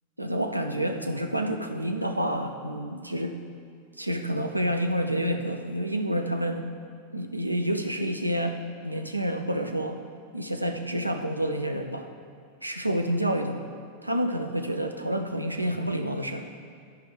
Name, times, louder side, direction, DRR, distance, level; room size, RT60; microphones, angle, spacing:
voice 1, 0.2-3.4 4.0-6.6 7.1-10.0 10.3-12.1 12.6-13.6 14.0-16.5, right 1 dB, 85° right, 6 dB, 0.6 m, -28 dB
13.0 x 5.1 x 4.8 m, 2.2 s
figure-of-eight pair, 90°, 0 cm